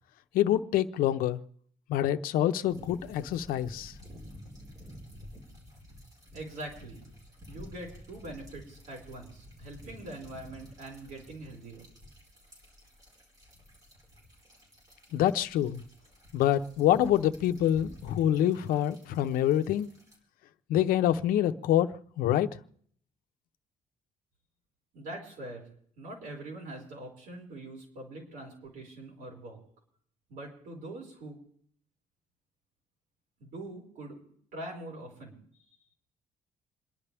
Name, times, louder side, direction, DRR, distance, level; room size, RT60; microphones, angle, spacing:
voice 1, 0.3-1.4 1.9-3.9 15.1-15.8 16.3-19.9 20.7-21.9 22.2-22.6, left 11 dB, 85° left, 10 dB, 0.8 m, -26 dB
sound 1, 2.7-20.2, equal, 25° right, 4.3 m, -51 dB
voice 2, 6.3-7.0 7.5-11.9 24.9-25.7 26.0-29.6 30.3-31.4 33.4-34.2 34.5-35.4, right 1 dB, 75° right, -1 dB, 5.0 m, -43 dB
28.0 x 11.0 x 3.4 m, 0.62 s
cardioid pair, 165°, 14 cm